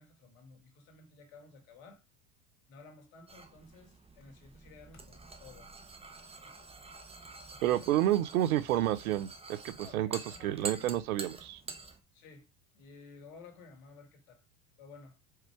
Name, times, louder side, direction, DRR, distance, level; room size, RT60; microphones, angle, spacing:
voice 1, 0.0-2.0 2.7-5.7 6.4-6.5 7.5-7.9 9.8-11.0 12.1-12.5 12.7-14.4 14.8-15.2, left 4 dB, 75° left, 2.1 m, -54 dB
sound 1, 3.3-12.0, right 4 dB, 15° right, 1.0 m, -47 dB
voice 2, 7.6-11.6, right 13 dB, 85° right, 0.7 m, -30 dB
4.9 x 4.6 x 4.6 m
hypercardioid pair, 95°, 41 cm